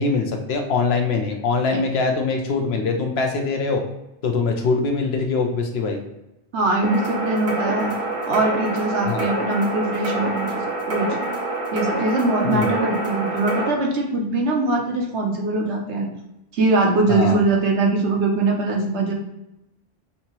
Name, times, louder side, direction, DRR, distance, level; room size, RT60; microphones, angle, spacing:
voice 1, 0.0-3.8 4.2-6.0 9.1-9.2 12.4-12.7 17.1-17.4, left 4 dB, 65° left, 3 dB, 0.8 m, -22 dB
voice 2, 6.5-7.9 8.2-10.6 10.9-11.2 11.7-16.1 16.5-19.1, right 2 dB, 70° right, 0 dB, 1.1 m, -22 dB
sound 1, 6.8-13.7, right 2 dB, 35° right, 0.7 m, -26 dB
5.8 x 2.7 x 2.9 m, 0.92 s
omnidirectional pair, 1.2 m